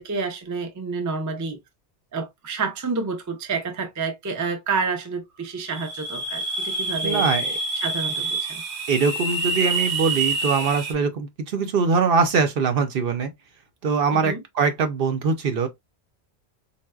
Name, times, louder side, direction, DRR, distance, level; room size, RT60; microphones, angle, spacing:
voice 1, 0.0-1.6 2.1-7.3 7.8-8.6 14.1-14.4, right 4 dB, 25° right, 0.4 m, -29 dB
sound 1, 5.6-10.9, right 3 dB, 85° right, 1.2 m, -27 dB
voice 2, 7.0-7.6 8.9-13.3 13.8-15.7, right 5 dB, 65° right, 0.8 m, -22 dB
4.0 x 2.1 x 2.3 m
omnidirectional pair, 1.1 m